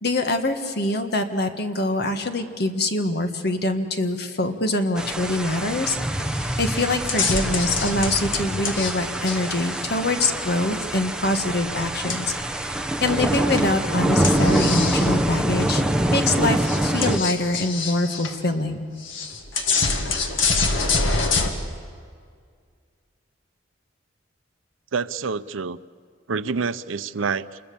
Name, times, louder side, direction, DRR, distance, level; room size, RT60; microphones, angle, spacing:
voice 1, 0.0-6.0 6.4-15.8 16.1-18.9, left 2 dB, 55° left, 6 dB, 1.7 m, -24 dB
sound 1, 5.0-17.2, right 1 dB, 5° right, 0.9 m, -25 dB
sound 2, 6.2-6.4 6.7-8.9 9.3-10.5 12.1-12.6 13.3-13.7 14.2-15.1 15.6-15.7 16.2-16.3 16.6-18.4 19.0-21.5, left 4 dB, 75° left, 2.0 m, -26 dB
voice 2, 24.9-25.8 26.3-27.6, right 5 dB, 85° right, 15 dB, 0.6 m, -27 dB
27.5 x 21.5 x 7.0 m, 2.1 s
head